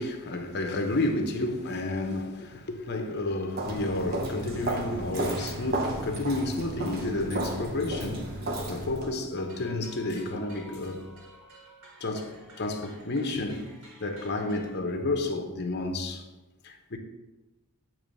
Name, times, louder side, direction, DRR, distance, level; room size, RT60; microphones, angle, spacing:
voice 1, 0.0-11.2 12.0-13.7 14.0-16.2 16.6-17.0, left 2 dB, 50° left, 0.8 m, -31 dB
Walk footsteps, 3.5-9.1, right 1 dB, 45° right, 0.8 m, -33 dB
sound 1, 9.3-14.8, right 2 dB, 70° right, 1.9 m, -52 dB
8.6 x 3.1 x 5.2 m
head